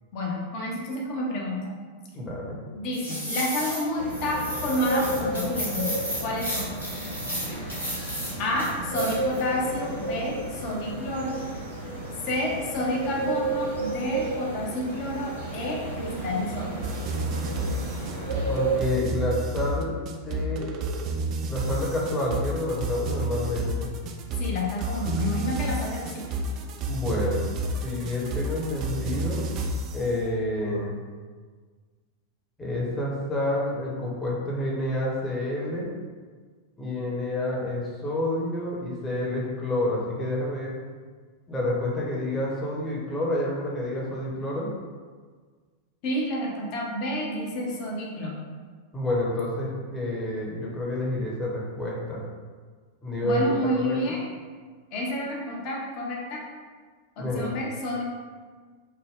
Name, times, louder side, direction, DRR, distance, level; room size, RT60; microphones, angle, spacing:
voice 1, 0.1-1.7 2.7-5.9 6.2-6.7 8.4-11.4 12.2-16.7 24.4-26.2 46.0-48.4 53.2-54.2 54.9-56.5 57.2-58.0, left 1 dB, 45° left, -2 dB, 0.7 m, -29 dB
voice 2, 2.1-2.6 18.5-19.9 20.2-20.7 21.5-23.9 26.9-27.5 27.8-29.5 29.9-30.9 32.6-35.9 36.8-40.7 41.5-44.7 48.9-52.2 53.0-53.4 53.7-54.0 57.2-57.5, left 1 dB, 15° left, -4 dB, 0.9 m, -29 dB
sound 1, 2.9-3.8 4.1-8.3 8.6-9.4 9.8-9.9, equal, 90° left, 1.1 m, -33 dB
sound 2, 4.0-18.8, right 2 dB, 75° right, 1.0 m, -32 dB
sound 3, 16.8-30.1, right 2 dB, 35° right, 0.3 m, -30 dB
3.4 x 2.2 x 3.5 m, 1.5 s
figure-of-eight pair, 90°, 0 cm